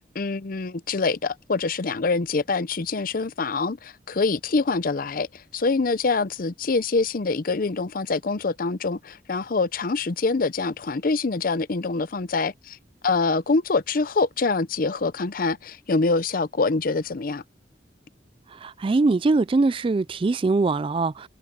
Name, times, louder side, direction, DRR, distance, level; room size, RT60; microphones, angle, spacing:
voice 1, 0.1-12.8 13.0-17.4, left 3 dB, 50° left, 0.6 m, -25 dB
voice 2, 18.5-21.3, right 3 dB, 30° right, 0.3 m, -22 dB
head